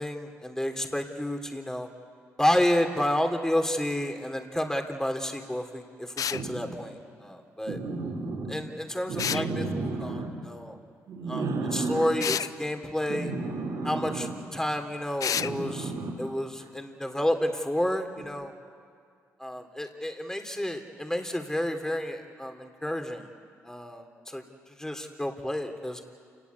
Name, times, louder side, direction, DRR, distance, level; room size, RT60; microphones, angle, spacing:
voice 1, 0.0-1.9 2.4-7.8 8.5-10.8 11.3-13.3 13.8-18.5 19.4-23.3 23.6-24.4 24.8-26.0, left 1 dB, 10° left, 4 dB, 3.4 m, -30 dB
sound 1, 6.2-6.4 9.2-9.5 12.2-12.5 15.2-15.5, left 8 dB, 60° left, 0.6 m, -29 dB
sound 2, 6.3-6.7 7.7-8.6 9.1-10.3 11.1-12.2 13.1-14.3 15.3-16.3 18.2-18.3, right 3 dB, 70° right, 4.6 m, -32 dB
28.5 x 19.0 x 8.5 m, 2.2 s
supercardioid pair, 50°, 7 cm